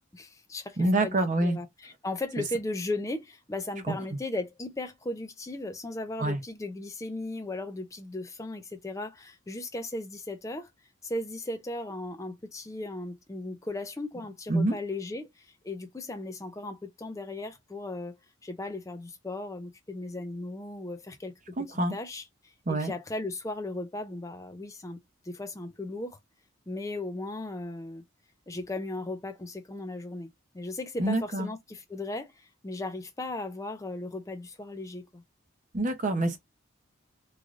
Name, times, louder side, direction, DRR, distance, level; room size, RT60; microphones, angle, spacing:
voice 1, 0.1-10.7 11.0-18.2 18.4-25.0 25.2-26.2 26.7-28.0 28.5-30.3 30.5-35.2, left 2 dB, 15° left, 0.4 m, -37 dB
voice 2, 0.8-1.6 3.9-4.0 6.2-6.4 14.5-14.8 21.6-21.9 22.7-22.9 31.0-31.5 35.7-36.4, right 2 dB, 35° right, 0.7 m, -26 dB
3.1 x 2.5 x 2.5 m
head